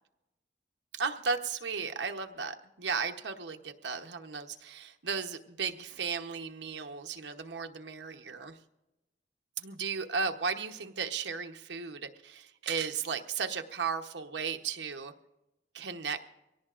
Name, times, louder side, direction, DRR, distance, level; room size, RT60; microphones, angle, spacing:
voice 1, 0.9-8.6 9.6-15.1 15.7-16.2, right 5 dB, 85° right, 6 dB, 1.0 m, -35 dB
24.0 x 17.5 x 2.5 m, 0.97 s
head